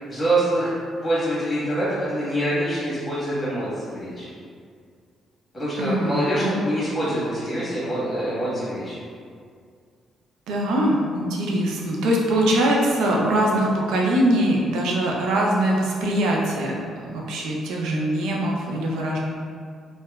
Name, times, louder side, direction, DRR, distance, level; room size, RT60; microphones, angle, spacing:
voice 1, 0.1-0.7 1.0-4.3 5.5-9.0, right 1 dB, 20° left, -9 dB, 1.3 m, -25 dB
voice 2, 5.8-6.6 10.5-16.7 17.0-19.2, right 1 dB, 85° right, -2 dB, 0.4 m, -22 dB
2.7 x 2.2 x 2.3 m, 2.1 s
cardioid pair, 90°, 0 cm